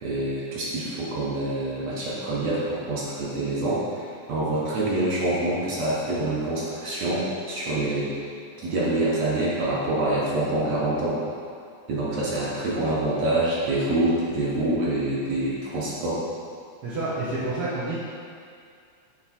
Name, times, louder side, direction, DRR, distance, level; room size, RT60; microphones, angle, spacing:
voice 1, 0.0-8.2 8.6-11.2 11.9-16.2, right 1 dB, 65° right, -7 dB, 1.9 m, -26 dB
voice 2, 16.8-18.0, right 2 dB, 85° right, -9 dB, 1.2 m, -28 dB
6.9 x 3.4 x 4.2 m, 2.3 s
omnidirectional pair, 3.7 m